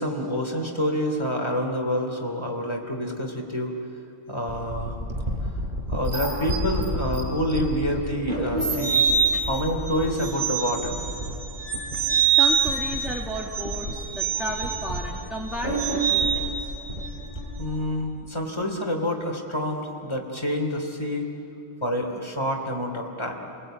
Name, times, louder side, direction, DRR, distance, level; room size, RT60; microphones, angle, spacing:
voice 1, 0.0-3.7 4.3-5.0 5.9-9.0 9.4-11.0 17.6-21.3 21.8-23.3, equal, 20° left, 1 dB, 3.1 m, -27 dB
sound 1, 4.5-17.6, right 5 dB, 40° right, 6.3 m, -26 dB
voice 2, 12.3-16.7, equal, ahead, -2 dB, 1.7 m, -34 dB
30.0 x 19.0 x 9.0 m, 2.7 s
omnidirectional pair, 1.3 m